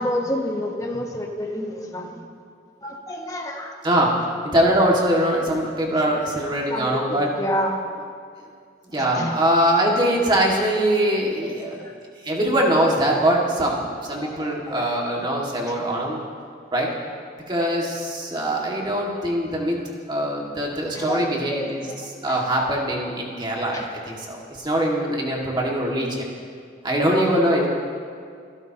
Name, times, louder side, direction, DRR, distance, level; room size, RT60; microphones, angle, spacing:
voice 1, 0.0-2.2 2.8-3.7 6.7-7.8 9.0-9.4 11.6-11.9 14.2-14.9 20.9-22.4 23.7-23.8 27.0-27.4, equal, 20° left, 1 dB, 1.3 m, -29 dB
voice 2, 4.4-7.3 8.9-11.7 12.2-16.2 16.7-16.9 17.5-19.8 20.1-26.3 26.8-27.7, right 1 dB, 25° right, -2 dB, 2.1 m, -22 dB
29.0 x 12.0 x 3.0 m, 2.2 s
head